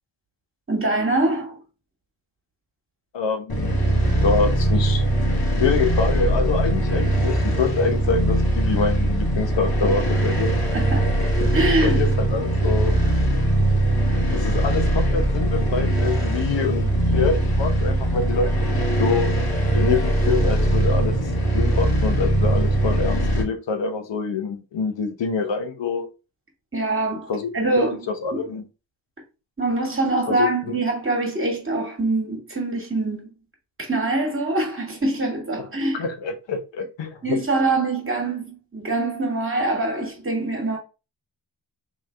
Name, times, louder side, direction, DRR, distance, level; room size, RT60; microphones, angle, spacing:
voice 1, 0.7-1.6 10.7-11.1 11.5-12.1 26.7-28.0 28.3-28.5 29.6-33.3 33.8-36.1 37.2-40.8, right 2 dB, 30° right, 2.0 m, -24 dB
voice 2, 3.1-3.7 4.2-5.0 5.6-10.5 11.7-13.0 14.3-19.3 19.7-21.2 21.5-26.1 27.3-27.5 27.8-28.6 30.3-30.7 35.9-37.4, left 5 dB, 75° left, 0.9 m, -26 dB
sound 1, 3.5-23.4, right 1 dB, 55° left, 1.7 m, -21 dB
3.5 x 3.2 x 3.3 m
cardioid pair, 50°, 44 cm